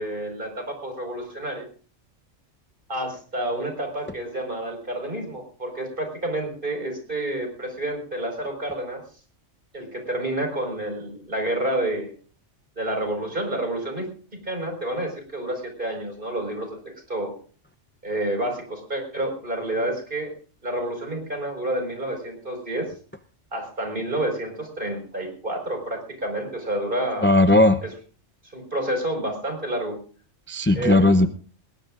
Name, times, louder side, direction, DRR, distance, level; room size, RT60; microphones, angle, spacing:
voice 1, 0.0-1.6 2.9-9.0 9.7-12.1 12.8-14.1 14.4-17.4 18.0-20.3 20.6-22.9 23.5-27.4 27.8-27.9 28.5-30.0 30.7-31.3, right 1 dB, 45° right, 4 dB, 5.2 m, -29 dB
voice 2, 27.2-27.8 30.5-31.3, left 2 dB, 15° left, 10 dB, 0.4 m, -17 dB
21.5 x 19.5 x 2.5 m, 0.42 s
omnidirectional pair, 1.3 m